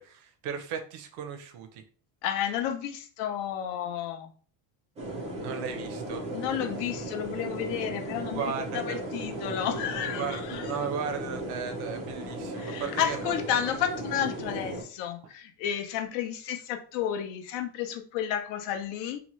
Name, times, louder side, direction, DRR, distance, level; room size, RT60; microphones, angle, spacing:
voice 1, 0.0-1.8 5.4-6.2 8.3-9.0 10.2-13.7, right 7 dB, 60° right, 6 dB, 0.6 m, -36 dB
voice 2, 2.2-4.3 6.3-10.7 12.5-19.2, left 9 dB, 70° left, 5 dB, 0.6 m, -32 dB
sound 1, 5.0-14.8, right 1 dB, 15° right, 0.3 m, -36 dB
2.8 x 2.1 x 3.0 m, 0.42 s
cardioid pair, 175°, 46 cm